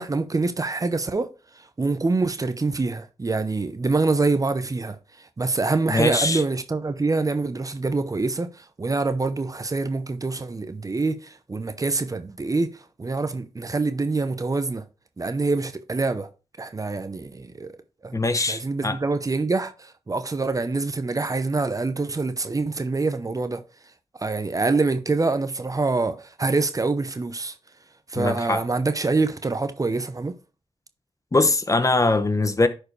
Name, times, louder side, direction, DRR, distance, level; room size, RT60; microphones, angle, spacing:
voice 1, 0.0-14.8 15.2-16.3 16.6-17.7 18.0-18.2 18.5-23.6 24.2-27.5 28.1-30.3, right 3 dB, 35° right, 0.8 m, -25 dB
voice 2, 5.9-6.4 18.1-19.0 28.1-28.6 31.3-32.7, left 2 dB, 30° left, 0.9 m, -22 dB
11.0 x 4.7 x 3.2 m
cardioid pair, 60°, 11 cm